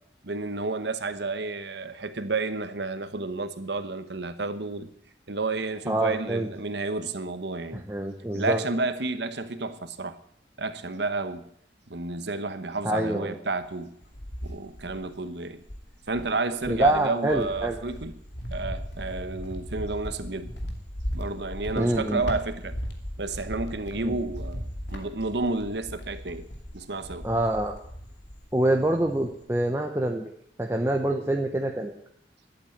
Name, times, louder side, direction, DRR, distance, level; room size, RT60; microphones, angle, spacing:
voice 1, 0.2-4.9 5.3-7.8 8.3-10.2 10.6-11.5 11.9-13.9 14.4-15.6 16.1-18.2 18.5-20.5 21.1-22.7 23.2-26.4 26.7-27.3, right 3 dB, 75° right, 11 dB, 1.1 m, -31 dB
voice 2, 5.9-6.5 7.9-8.6 12.8-13.4 16.7-17.8 21.8-22.2 24.0-24.1 27.2-27.8 28.5-30.3 30.6-31.9, right 1 dB, 15° right, 2 dB, 1.0 m, -25 dB
Cricket, 13.6-15.2 15.6-28.6 28.9-29.4, equal, 80° left, 2.4 m, -37 dB
12.0 x 8.5 x 8.7 m, 0.70 s
head